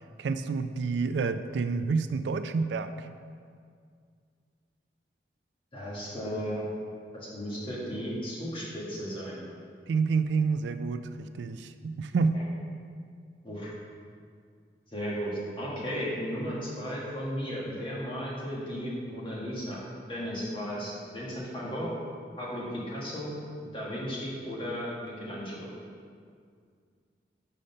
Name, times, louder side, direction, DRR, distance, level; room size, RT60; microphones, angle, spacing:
voice 1, 0.2-3.1 9.9-12.4, right 4 dB, 85° right, 10 dB, 0.3 m, -28 dB
voice 2, 5.7-6.7 7.1-9.4 12.3-12.4 13.4-13.7 14.9-21.9 22.4-23.3 23.7-25.7, equal, 30° left, -6 dB, 1.5 m, -35 dB
5.4 x 5.1 x 5.5 m, 2.2 s
head